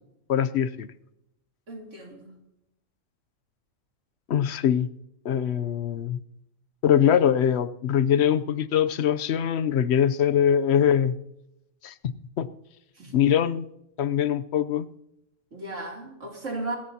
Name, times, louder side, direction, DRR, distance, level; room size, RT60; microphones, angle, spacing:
voice 1, 0.3-0.9 4.3-4.9 5.2-6.2 6.8-11.2 11.8-12.5 13.1-13.7 14.0-14.9, left 9 dB, 60° left, 14 dB, 0.9 m, -23 dB
voice 2, 1.7-2.4 13.0-13.1 15.5-16.8, right 2 dB, 70° right, -1 dB, 3.4 m, -35 dB
27.0 x 13.5 x 2.8 m, 0.84 s
omnidirectional pair, 1.3 m